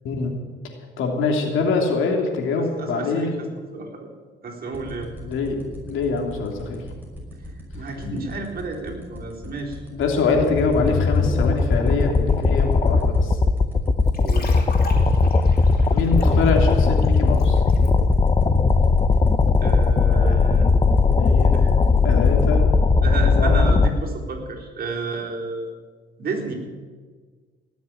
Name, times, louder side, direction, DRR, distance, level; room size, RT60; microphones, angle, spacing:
voice 1, 1.0-3.3 5.2-5.6 5.9-6.8 8.1-8.2 9.9-13.4 15.9-17.6 20.1-20.6 21.1-21.7 22.0-22.6 23.1-23.7, left 4 dB, 80° left, 2 dB, 3.0 m, -24 dB
voice 2, 2.6-3.3 3.7-4.1 4.4-5.1 7.4-9.8 14.2-14.7 19.6-20.7 21.5-21.7 23.0-25.7 26.2-26.5, right 3 dB, 50° right, -1 dB, 3.9 m, -32 dB
sound 1, 4.7-22.4, left 1 dB, 10° right, 5.9 m, -38 dB
sound 2, 10.1-23.9, left 4 dB, 25° left, 0.9 m, -18 dB
sound 3, 14.1-17.9, left 2 dB, 50° left, 4.1 m, -39 dB
18.5 x 7.3 x 9.4 m, 1.5 s
cardioid pair, 90°, 20 cm